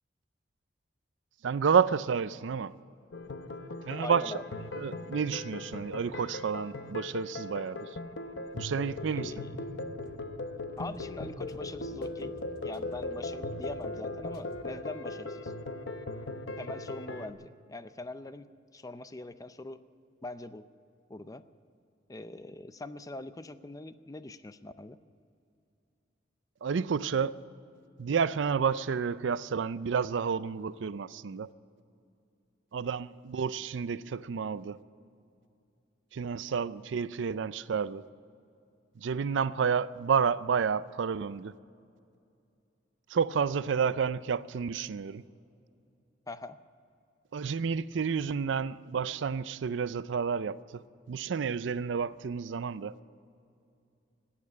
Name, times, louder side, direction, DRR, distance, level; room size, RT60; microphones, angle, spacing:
voice 1, 1.4-2.7 3.9-4.3 4.7-7.9 8.5-9.3 26.6-27.4 28.0-31.5 32.7-34.8 36.1-38.0 39.0-41.6 43.1-45.2 47.3-50.8 51.1-52.9, right 6 dB, 80° right, 0.4 m, -30 dB
sound 1, 3.1-17.3, left 2 dB, 90° left, 0.9 m, -39 dB
voice 2, 4.0-4.4 9.1-10.0 10.8-12.4 12.6-15.5 16.6-19.8 20.2-20.7 21.1-21.4 22.1-25.0 46.3-46.6, left 2 dB, 20° left, 0.5 m, -43 dB
sound 2, 8.7-14.8, left 1 dB, 55° left, 1.1 m, -52 dB
17.0 x 8.6 x 9.6 m
head